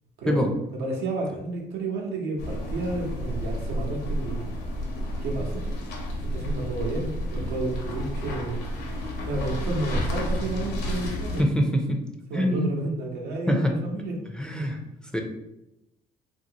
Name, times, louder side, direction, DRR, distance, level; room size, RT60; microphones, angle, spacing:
voice 1, 0.2-4.5 5.2-5.7 6.2-8.6 9.2-11.4 12.3-14.2, right 2 dB, 85° right, 0 dB, 0.8 m, -31 dB
sound 1, 2.4-11.4, equal, 75° left, 0.8 m, -31 dB
voice 2, 11.4-12.0 12.3-12.7 13.5-13.7 14.3-14.8 15.1-15.2, equal, 5° left, 1 dB, 0.4 m, -24 dB
2.8 x 2.6 x 2.8 m, 0.88 s
cardioid pair, 110°, 17 cm